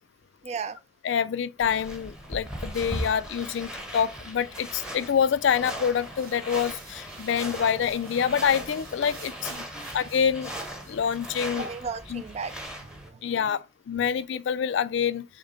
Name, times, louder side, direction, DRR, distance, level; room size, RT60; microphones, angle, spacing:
voice 1, 0.4-0.8 9.7-9.9 11.6-12.5 12.9-13.6, right 5 dB, 35° right, 0.4 m, -36 dB
voice 2, 1.0-9.6 9.9-10.5 10.9-11.7 12.1-12.2 13.2-15.3, left 7 dB, 70° left, 0.3 m, -26 dB
sound 1, 1.6-13.1, equal, 5° right, 0.9 m, -38 dB
sound 2, 5.9-11.1, right 5 dB, 55° right, 1.0 m, -51 dB
6.1 x 2.1 x 3.7 m
head